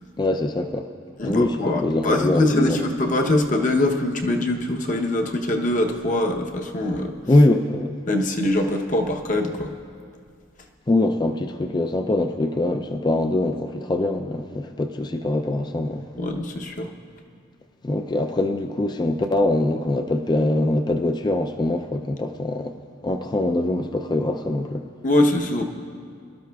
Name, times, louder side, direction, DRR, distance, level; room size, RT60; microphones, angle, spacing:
voice 1, 0.2-0.9 1.2-2.9 7.3-7.9 10.9-16.1 17.8-22.7 23.0-24.9, left 2 dB, 20° left, 5 dB, 0.4 m, -23 dB
voice 2, 1.2-7.2 8.1-9.7 16.2-16.9 25.0-25.6, left 1 dB, 40° left, 2 dB, 0.8 m, -23 dB
23.5 x 12.5 x 2.3 m, 2.2 s
head